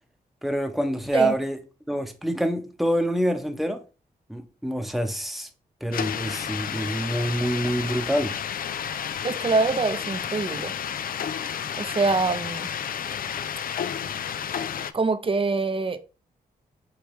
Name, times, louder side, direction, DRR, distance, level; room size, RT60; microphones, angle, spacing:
voice 1, 0.4-1.6 1.9-3.8 4.3-5.5 5.8-8.4, right 1 dB, ahead, 0.9 m, -26 dB
sound 1, 5.9-14.9, left 8 dB, 60° left, 0.4 m, -31 dB
voice 2, 9.2-10.7 11.8-12.7 14.9-16.0, right 3 dB, 35° right, 0.6 m, -24 dB
4.9 x 3.2 x 3.1 m
cardioid pair, 50°, 16 cm